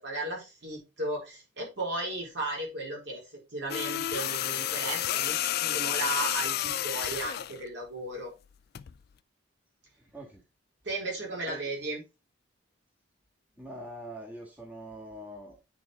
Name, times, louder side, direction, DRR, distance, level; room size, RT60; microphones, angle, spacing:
voice 1, 0.0-3.2 3.5-8.3 10.8-12.0, right 2 dB, 60° right, -2 dB, 4.1 m, -35 dB
sound 1, 3.7-7.6 8.7-8.9, left 12 dB, 50° left, 0.3 m, -30 dB
voice 2, 10.0-10.4 11.5-11.6 13.6-15.6, right 1 dB, 10° right, -2 dB, 1.6 m, -43 dB
8.9 x 4.5 x 3.6 m, 0.28 s
head